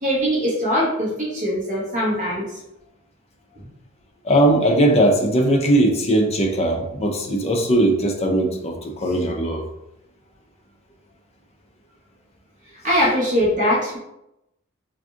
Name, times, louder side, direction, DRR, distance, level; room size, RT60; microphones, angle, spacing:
voice 1, 0.0-2.4 12.8-14.0, equal, 35° right, -5 dB, 1.0 m, -21 dB
voice 2, 4.2-9.6, right 1 dB, 30° left, 2 dB, 0.5 m, -19 dB
3.9 x 2.5 x 2.4 m, 0.86 s
head